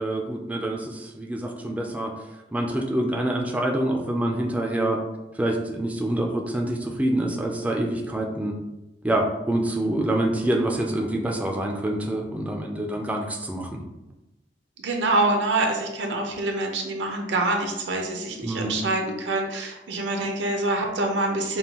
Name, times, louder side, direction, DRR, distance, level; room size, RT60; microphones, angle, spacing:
voice 1, 0.0-2.1 2.5-5.0 5.3-8.5 9.0-13.8 18.4-18.8, right 1 dB, 10° right, 0 dB, 0.4 m, -26 dB
voice 2, 14.8-21.6, right 2 dB, 70° right, 3 dB, 0.6 m, -25 dB
5.3 x 2.2 x 2.9 m, 0.99 s
head